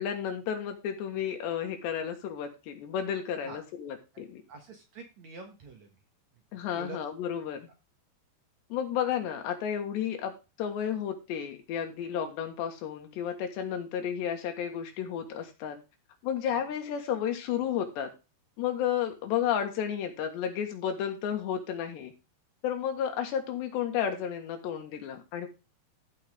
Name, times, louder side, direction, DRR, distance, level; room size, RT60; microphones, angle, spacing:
voice 1, 0.0-4.4 6.5-7.6 8.7-15.8 16.2-18.1 18.6-22.1 22.6-25.5, left 9 dB, 85° left, 5 dB, 3.9 m, -32 dB
voice 2, 4.1-6.0 6.7-7.0 16.5-16.6, right 4 dB, 55° right, 4 dB, 2.2 m, -46 dB
14.5 x 5.7 x 3.7 m, 0.28 s
omnidirectional pair, 4.8 m